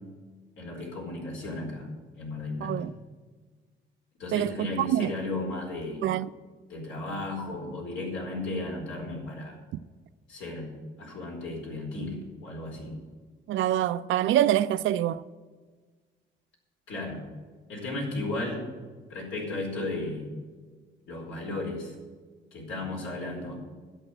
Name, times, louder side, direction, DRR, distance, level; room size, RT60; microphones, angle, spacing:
voice 1, 0.6-1.9 2.2-2.8 4.2-6.1 6.7-9.6 10.3-10.7 11.0-12.9 16.9-17.2 17.7-18.6 19.1-20.2 21.1-21.9 22.5-23.6, left 2 dB, 75° left, 4.5 m, -34 dB
voice 2, 2.6-2.9 4.3-5.1 6.0-6.3 13.5-15.2, right 12 dB, 75° right, 0.5 m, -25 dB
11.0 x 8.0 x 8.9 m
cardioid pair, 90°, 20 cm